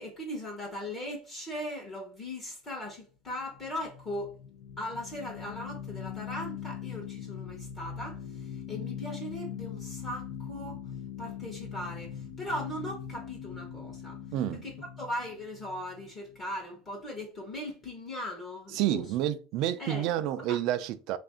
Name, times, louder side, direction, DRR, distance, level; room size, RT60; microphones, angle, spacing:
voice 1, 0.0-4.4 4.8-10.8 11.2-14.2 14.5-19.1 19.8-20.1 20.5-20.6, left 1 dB, 25° left, 0.9 m, -39 dB
sound 1, 3.4-16.6, left 8 dB, 65° left, 0.5 m, -41 dB
voice 2, 14.3-14.6 18.7-21.2, right 12 dB, 50° right, 0.4 m, -29 dB
3.4 x 2.5 x 3.5 m
supercardioid pair, 155°, 0 cm